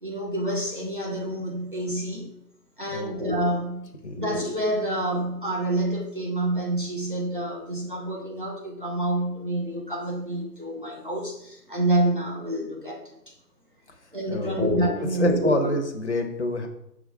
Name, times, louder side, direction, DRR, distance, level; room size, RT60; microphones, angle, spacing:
voice 1, 0.0-2.3 2.8-3.9 4.2-13.0 14.1-15.5, right 1 dB, 30° right, -2 dB, 0.8 m, -27 dB
voice 2, 14.3-14.7 15.1-16.7, left 1 dB, 45° left, 4 dB, 0.9 m, -27 dB
6.3 x 3.6 x 4.8 m, 0.78 s
figure-of-eight pair, 155°, 49 cm